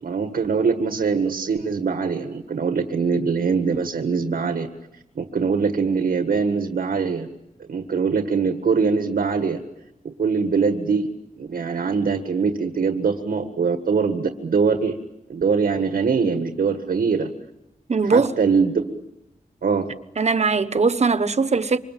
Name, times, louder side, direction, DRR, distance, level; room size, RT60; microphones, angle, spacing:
voice 1, 0.0-4.7 5.2-7.3 7.7-9.6 10.0-11.1 11.4-15.0 15.3-17.3 18.0-19.0 19.6-19.9, right 5 dB, 90° right, 1.8 m, -22 dB
voice 2, 17.9-18.3 20.2-21.8, right 4 dB, 50° right, 1.2 m, -20 dB
28.0 x 25.0 x 7.6 m
wide cardioid pair, 105°, 15 cm